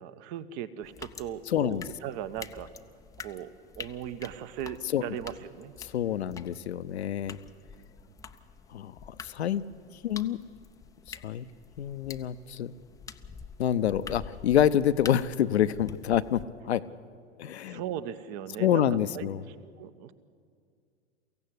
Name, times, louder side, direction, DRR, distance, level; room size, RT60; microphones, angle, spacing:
voice 1, 0.0-2.7 3.2-3.5 3.8-5.7 7.7-8.4 17.6-20.1, right 10 dB, 40° right, 14 dB, 1.1 m, -38 dB
erst tropfts dann läufts dann tropfts, 0.8-16.5, left 6 dB, 10° left, 0.6 m, -47 dB
voice 2, 1.5-1.8 4.9-5.0 5.9-7.4 8.7-8.9 9.2-9.6 10.0-10.4 11.2-11.5 11.8-12.7 13.6-16.4 16.7-16.8 17.4-17.8 18.6-19.4, left 10 dB, 65° left, 13 dB, 0.8 m, -26 dB
23.5 x 16.0 x 8.1 m, 2.2 s
figure-of-eight pair, 95°, 35 cm